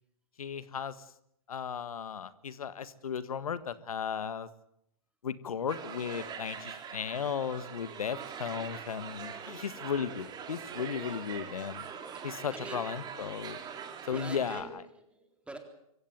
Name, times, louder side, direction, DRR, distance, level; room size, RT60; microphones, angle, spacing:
voice 1, 0.4-1.0 1.5-4.5 5.2-11.9 12.2-13.6 14.1-14.8, left 7 dB, 75° left, 15 dB, 1.6 m, -35 dB
sound 1, 5.7-14.6, right 7 dB, 20° right, 2.9 m, -43 dB
voice 2, 12.5-12.8 14.1-15.6, right 2 dB, 5° right, 6 dB, 3.8 m, -44 dB
25.0 x 16.0 x 9.2 m, 0.77 s
hypercardioid pair, 115°, 19 cm